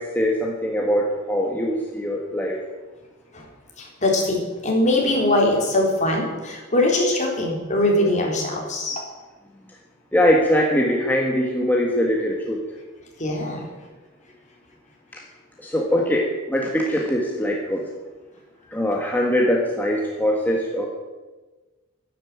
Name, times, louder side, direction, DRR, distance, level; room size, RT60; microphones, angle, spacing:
voice 1, 0.0-2.5 10.1-12.6 15.6-17.8 18.7-20.9, equal, 10° left, -1 dB, 1.6 m, -22 dB
voice 2, 4.0-9.0 13.2-13.6, left 1 dB, 40° left, -1 dB, 4.0 m, -21 dB
12.0 x 11.0 x 8.6 m, 1.3 s
head